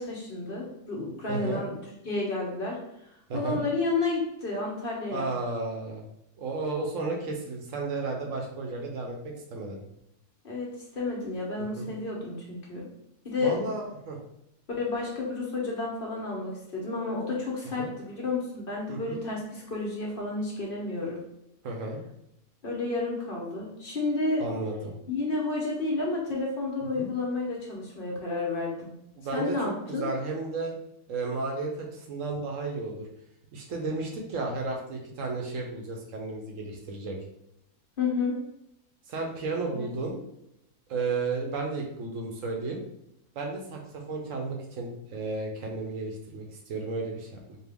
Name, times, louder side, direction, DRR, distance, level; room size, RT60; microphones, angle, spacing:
voice 1, 0.0-1.8 2.0-2.8 3.3-5.3 10.4-12.9 13.2-13.6 14.8-21.2 22.6-24.5 25.1-28.9 29.3-30.0 38.0-38.4 39.7-39.9, left 3 dB, 40° left, -3 dB, 1.0 m, -31 dB
voice 2, 1.3-1.6 3.3-3.6 5.1-6.0 6.4-9.8 11.8-11.9 13.4-14.2 17.8-17.9 18.9-19.2 21.6-22.0 24.4-24.9 26.9-27.1 29.2-30.8 31.1-33.1 33.5-37.2 39.1-40.3 40.9-42.8 43.3-47.6, right 3 dB, 65° right, 1 dB, 1.1 m, -33 dB
4.4 x 2.4 x 3.5 m, 0.81 s
omnidirectional pair, 1.6 m